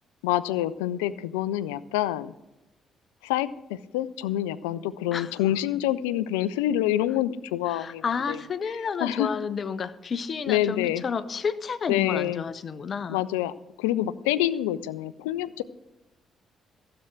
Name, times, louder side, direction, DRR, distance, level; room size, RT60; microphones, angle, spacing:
voice 1, 0.2-2.3 3.2-8.4 9.0-9.3 10.5-11.0 11.9-12.4 13.1-13.5 13.8-15.6, left 13 dB, 75° left, 17 dB, 0.4 m, -27 dB
voice 2, 7.7-13.2, left 6 dB, 45° left, 14 dB, 0.8 m, -31 dB
15.5 x 7.9 x 6.0 m, 0.96 s
figure-of-eight pair, 45°, 0 cm